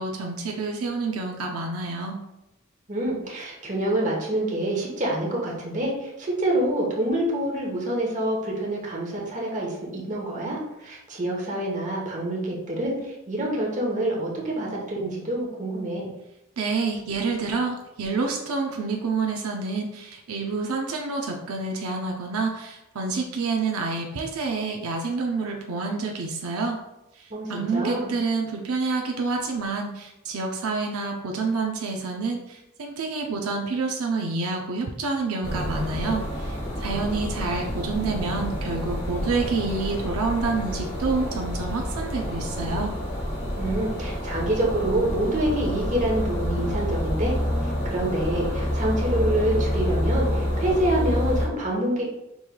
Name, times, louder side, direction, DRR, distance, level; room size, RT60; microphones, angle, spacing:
voice 1, 0.0-2.2 16.6-26.8 27.5-42.9, right 4 dB, 80° right, 1 dB, 0.5 m, -28 dB
voice 2, 2.9-16.0 27.3-28.1 43.6-47.3 47.8-52.1, right 1 dB, 35° right, -2 dB, 1.0 m, -26 dB
sound 1, 35.4-51.5, equal, 55° left, 1.2 m, -28 dB
5.3 x 3.1 x 2.3 m, 0.91 s
head